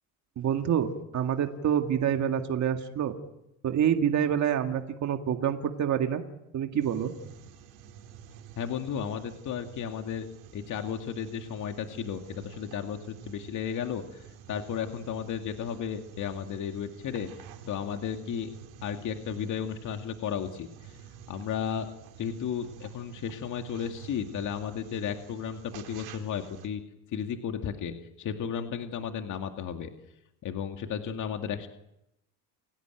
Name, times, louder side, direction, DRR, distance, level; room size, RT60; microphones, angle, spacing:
voice 1, 0.4-3.2 3.6-6.2 6.5-7.1, right 9 dB, 45° right, 5 dB, 2.1 m, -27 dB
sound 1, 6.8-26.7, right 8 dB, 70° right, 4.4 m, -49 dB
voice 2, 8.6-10.3 10.5-18.5 18.8-21.0 21.3-21.9 22.2-26.8 27.1-29.9 30.4-31.7, left 8 dB, 50° left, 5 dB, 2.2 m, -34 dB
29.5 x 17.0 x 9.1 m, 0.86 s
supercardioid pair, 110°, 39 cm